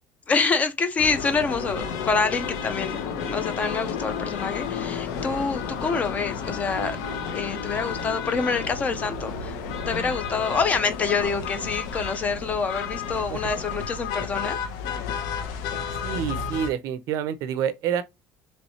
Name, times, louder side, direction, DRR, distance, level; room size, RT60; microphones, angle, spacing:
voice 1, 0.3-7.0 7.3-9.6 9.9-14.6, left 4 dB, 20° left, 0.5 m, -26 dB
sound 1, 1.0-16.7, left 6 dB, 85° left, 0.7 m, -32 dB
voice 2, 16.0-18.0, right 8 dB, 55° right, 0.4 m, -27 dB
3.0 x 3.0 x 2.7 m
cardioid pair, 175°, 7 cm